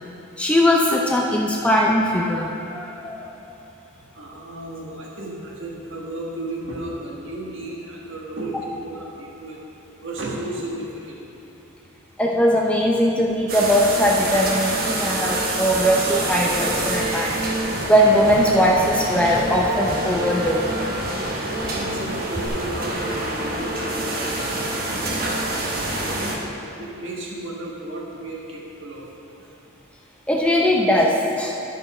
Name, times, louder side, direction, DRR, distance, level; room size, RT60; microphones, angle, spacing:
voice 1, 0.4-3.3 12.2-17.4 17.9-20.7 30.3-31.5, equal, 5° left, -2 dB, 0.5 m, -20 dB
voice 2, 4.1-9.6 10.0-11.2 21.2-26.4 26.8-29.1, right 1 dB, 65° right, -4 dB, 1.5 m, -34 dB
sound 1, 13.5-26.4, right 1 dB, 45° right, 1.0 m, -26 dB
Tap, 16.1-22.5, equal, 15° right, 1.9 m, -36 dB
11.0 x 5.4 x 4.9 m, 2.9 s
head